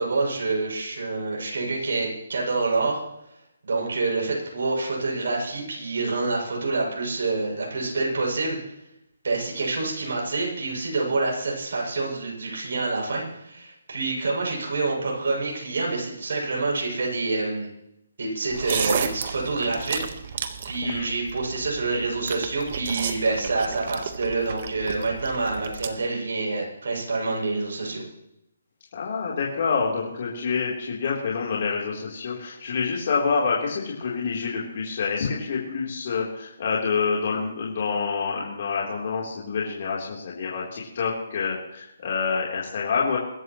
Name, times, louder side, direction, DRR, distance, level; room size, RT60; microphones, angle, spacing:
voice 1, 0.0-3.0 3.6-8.6 9.2-17.7 18.2-20.0 20.3-20.4 20.7-28.0, right 3 dB, 70° right, -2 dB, 7.5 m, -27 dB
sound 1, 18.5-25.9, right 7 dB, 45° right, 1.5 m, -33 dB
voice 2, 28.9-43.2, left 5 dB, 50° left, -4 dB, 3.8 m, -27 dB
24.0 x 12.5 x 3.2 m, 0.83 s
hypercardioid pair, 160°, 0 cm